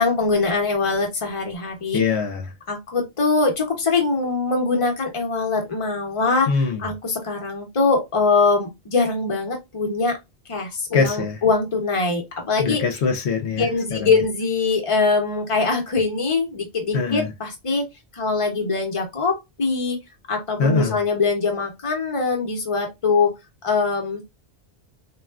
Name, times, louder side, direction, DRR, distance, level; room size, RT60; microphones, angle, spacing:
voice 1, 0.0-2.0 2.7-6.5 6.8-10.2 10.5-12.8 13.6-17.9 18.1-20.0 20.3-23.3 23.6-24.2, left 4 dB, 30° left, 0.9 m, -22 dB
voice 2, 1.9-2.5 6.5-6.8 10.9-11.4 12.6-14.2 16.9-17.3 20.6-21.0, left 5 dB, 80° left, 0.9 m, -23 dB
3.5 x 2.3 x 2.3 m
omnidirectional pair, 1.1 m